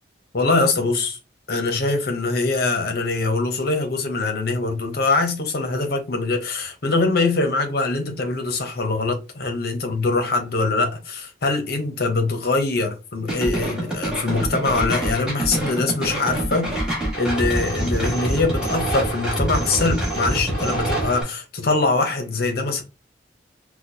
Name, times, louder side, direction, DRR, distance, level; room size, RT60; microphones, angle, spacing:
voice 1, 0.3-1.2 1.5-16.8 17.2-22.8, left 3 dB, 55° left, 0.8 m, -23 dB
sound 1, 13.3-21.2, right 1 dB, 5° right, 1.4 m, -25 dB
4.3 x 2.3 x 2.6 m
head